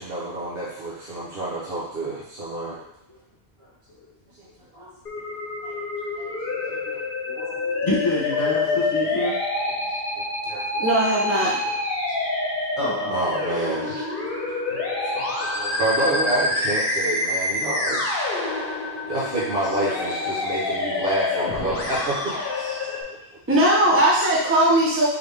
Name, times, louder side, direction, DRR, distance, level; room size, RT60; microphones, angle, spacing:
voice 1, 0.0-2.8 4.7-4.9 5.6-5.7 6.1-6.3 6.7-6.8 8.7-9.1 10.5-10.8 11.6-11.7 12.8-13.9 14.7-14.8 15.1-18.2 19.1-23.0, right 2 dB, 60° right, -8 dB, 1.1 m, -28 dB
voice 2, 3.6-4.0 4.8-4.9 5.7-5.8 6.2-7.0 7.3-9.3 12.8-13.4, left 1 dB, 35° left, -7 dB, 1.5 m, -29 dB
Musical instrument, 5.1-23.0, left 2 dB, 60° left, 1.0 m, -27 dB
voice 3, 10.8-11.6 23.5-25.1, right 1 dB, 15° right, -5 dB, 0.8 m, -19 dB
3.9 x 3.4 x 3.4 m, 0.79 s
omnidirectional pair, 1.1 m